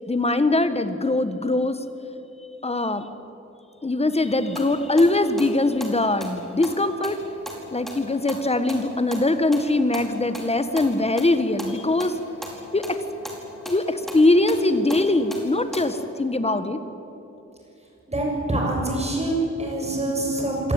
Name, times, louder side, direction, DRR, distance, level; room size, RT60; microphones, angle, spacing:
voice 1, 0.1-1.8 2.6-3.1 3.8-7.2 7.7-12.2 12.7-13.0 13.6-16.8, left 2 dB, 20° left, 10 dB, 1.5 m, -22 dB
sound 1, 4.3-15.8, equal, ahead, 4.6 m, -39 dB
voice 2, 18.1-20.7, right 1 dB, 20° right, -1 dB, 7.0 m, -25 dB
26.0 x 18.5 x 9.0 m, 3.0 s
wide cardioid pair, 125°, 29 cm